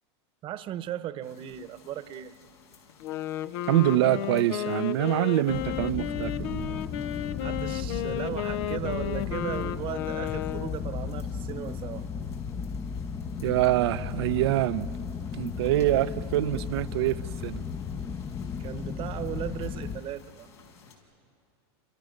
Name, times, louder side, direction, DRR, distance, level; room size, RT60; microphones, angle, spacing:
voice 1, 0.4-2.3 7.4-12.1 18.6-20.5, right 11 dB, 40° right, 13 dB, 1.1 m, -36 dB
sound 1, 1.2-20.9, left 5 dB, 85° left, 5.5 m, -56 dB
Wind instrument woodwind instrument, 2.9-10.9, left 11 dB, 65° left, 0.8 m, -33 dB
voice 2, 3.7-6.8 13.4-14.9 15.4-17.2 17.4-17.6, right 15 dB, 75° right, 14 dB, 0.8 m, -25 dB
sound 2, 5.5-20.0, left 6 dB, 20° left, 0.8 m, -35 dB
29.0 x 27.5 x 6.6 m, 2.5 s
supercardioid pair, 125°, 14 cm